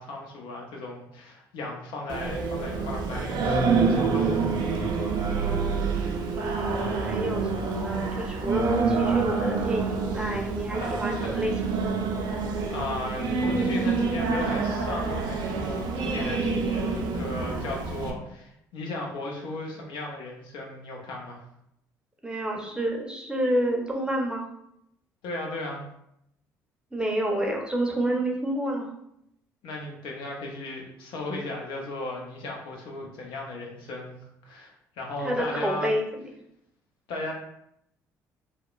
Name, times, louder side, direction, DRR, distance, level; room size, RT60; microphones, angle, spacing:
voice 1, 0.0-3.6 3.9-4.5 6.8-7.1 10.8-10.9 11.2-11.3 12.7-21.4 25.2-25.8 29.6-34.2 34.4-35.9 37.1-37.3, left 2 dB, 70° left, 0 dB, 0.5 m, -36 dB
Singing, 2.1-18.1, right 4 dB, 55° right, 0.4 m, -27 dB
voice 2, 5.3-5.9 6.3-11.9 22.2-24.4 26.9-28.9 35.2-36.2, right 1 dB, 10° right, 1 dB, 0.6 m, -29 dB
2.9 x 2.0 x 2.3 m, 0.76 s
hypercardioid pair, 55°, 9 cm